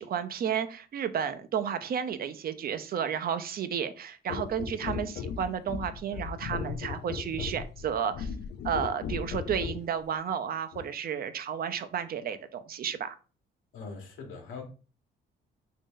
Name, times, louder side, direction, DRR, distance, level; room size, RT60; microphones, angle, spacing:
voice 1, 0.0-8.3 8.6-13.2, right 8 dB, 50° right, 0.4 m, -32 dB
sound 1, 4.3-9.9 10.7-10.9, left 6 dB, 55° left, 0.4 m, -37 dB
voice 2, 13.7-14.6, left 4 dB, 85° left, 1.1 m, -41 dB
3.0 x 2.6 x 3.7 m
cardioid pair, 90°, 20 cm